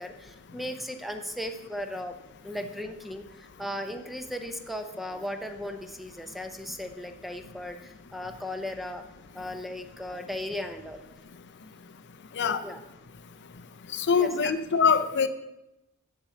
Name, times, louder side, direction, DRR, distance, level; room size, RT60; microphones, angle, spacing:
voice 1, 0.0-2.1 2.4-9.0 9.3-11.0 12.6-12.8 14.2-14.6, left 1 dB, ahead, 6 dB, 0.7 m, -36 dB
voice 2, 13.9-15.3, left 6 dB, 55° left, 10 dB, 0.6 m, -23 dB
7.3 x 7.0 x 7.1 m, 0.92 s
head